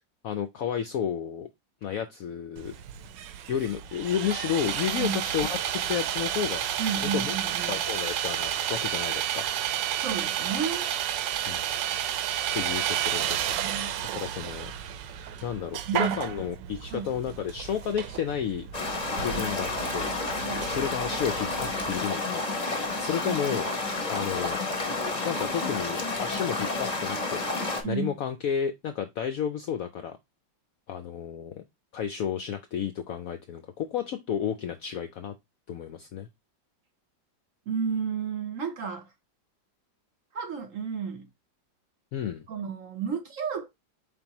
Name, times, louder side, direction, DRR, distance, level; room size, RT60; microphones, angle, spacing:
voice 1, 0.2-1.5 1.8-2.7 3.5-6.6 7.0-7.3 7.7-9.5 11.5-11.6 12.5-13.6 14.1-14.7 15.4-18.7 19.2-20.1 20.7-22.4 23.0-23.7 24.1-24.6 25.2-27.4 27.9-30.2 30.9-31.6 31.9-35.3 35.7-36.3 42.1-42.5, left 8 dB, 75° left, 0.8 m, -31 dB
Sawing, 2.6-22.0, right 10 dB, 80° right, 1.3 m, -31 dB
voice 2, 6.8-7.8 10.0-10.9 13.6-14.2 15.9-16.2 16.9-17.1 20.4-20.7 23.2-23.4 27.8-28.2 37.7-39.1 40.3-41.3 42.5-43.7, right 6 dB, 60° right, 0.9 m, -32 dB
sound 1, 18.7-27.8, left 3 dB, 30° left, 0.8 m, -30 dB
5.0 x 3.6 x 2.8 m
omnidirectional pair, 2.0 m